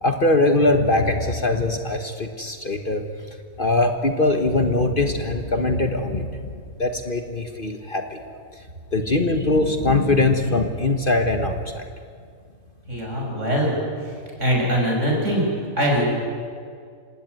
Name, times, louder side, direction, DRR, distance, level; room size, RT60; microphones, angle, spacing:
voice 1, 0.0-3.0 3.6-8.2 8.9-11.8, left 2 dB, 40° left, 5 dB, 1.5 m, -21 dB
voice 2, 12.9-13.8 14.4-15.4 15.8-16.0, equal, 55° right, -2 dB, 7.0 m, -22 dB
27.0 x 17.0 x 9.6 m, 2.1 s
omnidirectional pair, 1.5 m